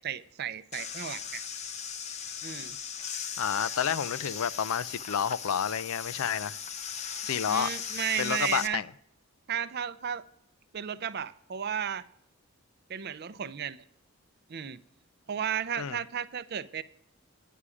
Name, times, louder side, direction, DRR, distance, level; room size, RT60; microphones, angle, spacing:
voice 1, 0.0-1.4 2.4-2.8 7.5-8.8 9.5-10.2 10.7-12.1 12.9-13.8 14.5-14.8 15.3-16.8, right 8 dB, 50° right, 0.5 m, -34 dB
sound 1, 0.7-8.7, left 7 dB, 30° left, 0.6 m, -38 dB
voice 2, 3.4-6.6 7.2-7.7 8.2-8.9 15.8-16.0, left 8 dB, 80° left, 0.4 m, -30 dB
10.0 x 9.7 x 4.9 m
head